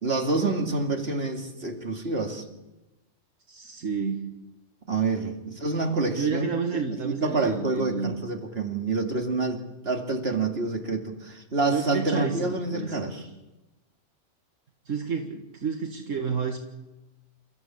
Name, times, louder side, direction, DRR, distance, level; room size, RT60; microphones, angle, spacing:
voice 1, 0.0-2.4 4.9-6.5 7.0-13.2, right 3 dB, 50° right, 3 dB, 2.7 m, -27 dB
voice 2, 3.5-4.3 6.1-8.2 11.7-13.3 14.9-16.6, right 5 dB, 75° right, 4 dB, 1.9 m, -30 dB
28.5 x 14.0 x 8.6 m, 1.0 s
omnidirectional pair, 1.3 m